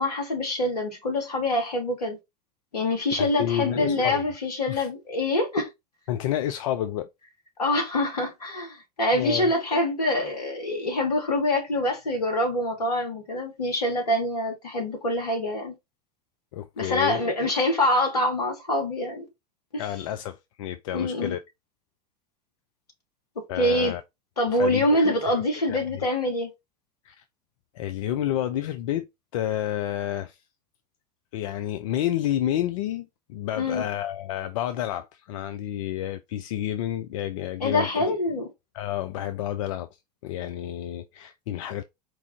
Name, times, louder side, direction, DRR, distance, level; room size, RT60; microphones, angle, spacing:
voice 1, 0.0-2.2 2.7-5.7 7.6-15.8 16.8-19.3 19.7-19.8 20.9-21.4 23.6-24.0 24.4-26.5 33.6-33.9 37.6-38.5, left 1 dB, 75° left, 1.7 m, -25 dB
voice 2, 3.2-4.1 4.7-4.9 6.1-7.1 9.1-9.5 16.5-17.2 19.8-21.4 23.5-24.0 24.5-25.1 25.7-25.9 27.0-27.2 27.7-29.1 29.3-30.4 31.3-37.9 38.7-39.9 40.2-41.8, left 12 dB, 55° left, 0.4 m, -30 dB
4.6 x 2.4 x 3.6 m
figure-of-eight pair, 80°, 21 cm